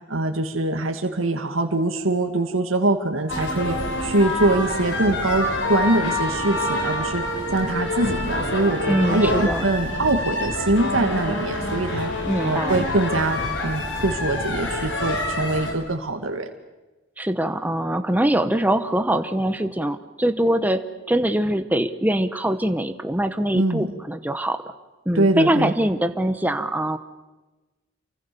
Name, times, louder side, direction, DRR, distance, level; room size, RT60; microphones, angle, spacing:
voice 1, 0.1-7.3 7.5-12.1 12.4-16.5 23.5-23.9 25.2-25.7, right 2 dB, 85° right, 4 dB, 2.1 m, -23 dB
sound 1, 3.3-15.7, left 1 dB, 65° left, 5.6 m, -26 dB
voice 2, 8.9-9.7 12.3-12.8 17.2-20.8 21.1-24.7 25.1-27.0, right 1 dB, 10° right, 8 dB, 1.0 m, -23 dB
28.5 x 24.5 x 7.0 m, 1.1 s
head